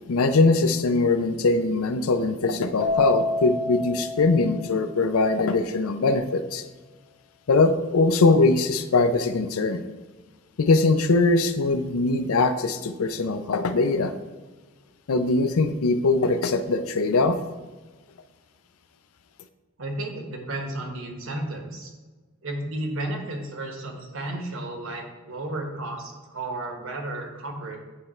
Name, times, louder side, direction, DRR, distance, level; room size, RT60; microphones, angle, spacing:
voice 1, 0.1-6.6 7.5-9.9 10.6-14.1 15.1-17.4, left 3 dB, 80° left, 10 dB, 0.5 m, -21 dB
Keyboard (musical), 2.8-5.3, left 3 dB, 35° left, 0.8 m, -29 dB
voice 2, 19.8-21.9 22.4-27.8, right 1 dB, 65° right, 2 dB, 1.2 m, -33 dB
9.2 x 3.2 x 4.4 m, 1.3 s
head